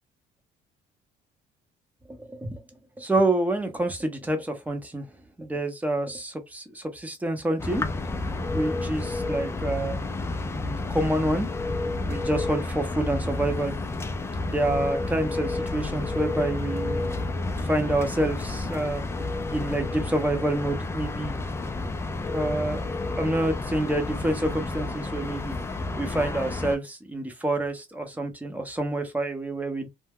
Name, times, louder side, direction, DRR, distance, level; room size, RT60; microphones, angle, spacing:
voice 1, 2.1-2.6 3.0-5.1 5.4-7.8 8.5-10.0 10.5-11.5 12.1-13.7 14.5-17.0 17.6-19.0 19.5-21.3 22.3-22.9 23.2-25.6 26.0-29.9, right 1 dB, 10° right, 0.7 m, -27 dB
sound 1, 7.6-26.8, left 2 dB, 15° left, 0.4 m, -30 dB
2.3 x 2.1 x 3.4 m
cardioid pair, 110°, 17 cm